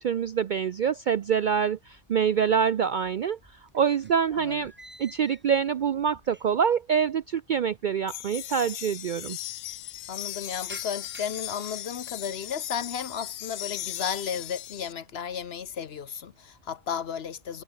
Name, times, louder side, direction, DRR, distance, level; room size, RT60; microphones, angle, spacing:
voice 1, 0.0-3.4 3.7-4.7 5.0-9.4, right 7 dB, 60° right, 0.5 m, -25 dB
sound 1, 1.5-2.4 2.7-6.8 7.1-7.2 8.0-8.1 8.3-8.4 8.7-9.2 9.6-12.8 13.2-13.7 14.2-14.6 15.0-15.9, right 1 dB, 10° right, 2.6 m, -53 dB
voice 2, 4.3-4.6 10.1-17.6, left 7 dB, 55° left, 1.1 m, -34 dB
sound 2, 8.1-14.9, left 13 dB, 90° left, 1.0 m, -38 dB
omnidirectional pair, 1.3 m